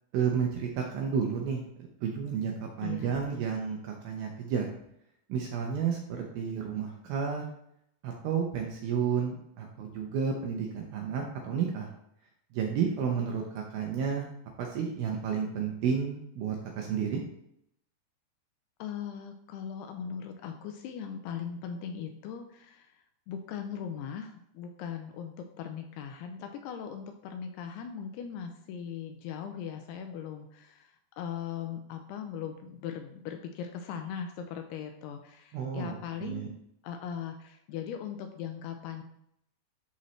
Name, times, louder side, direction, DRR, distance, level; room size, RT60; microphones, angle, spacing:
voice 1, 0.1-4.7 5.3-7.4 8.0-11.9 12.5-14.3 14.6-17.2 35.5-36.0 36.2-36.5, right 7 dB, 80° right, 1 dB, 2.2 m, -31 dB
voice 2, 2.8-3.2 18.8-22.9 23.3-36.6 36.8-39.0, left 8 dB, 80° left, 5 dB, 2.4 m, -39 dB
11.0 x 4.1 x 3.2 m, 0.75 s
omnidirectional pair, 5.0 m